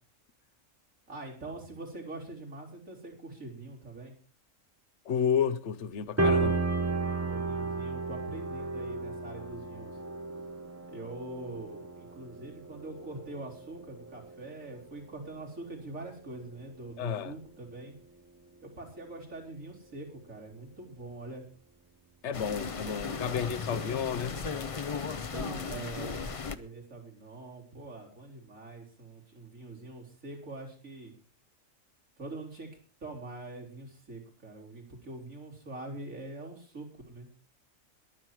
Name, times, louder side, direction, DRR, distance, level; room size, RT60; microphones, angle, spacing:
voice 1, 1.1-4.1 7.2-10.0 10.9-17.9 18.6-21.4 23.3-24.5 25.3-31.1 32.2-32.7 33.0-37.3, right 2 dB, 90° right, 4.3 m, -44 dB
voice 2, 5.1-6.7 17.0-17.3 22.2-24.4, left 7 dB, 65° left, 1.1 m, -31 dB
sound 1, 6.2-15.5 15.9-16.3 16.7-16.8 17.4-17.5, right 3 dB, 15° right, 0.7 m, -33 dB
sound 2, 22.3-26.5, left 5 dB, 35° left, 0.6 m, -36 dB
22.0 x 7.6 x 4.7 m
omnidirectional pair, 1.4 m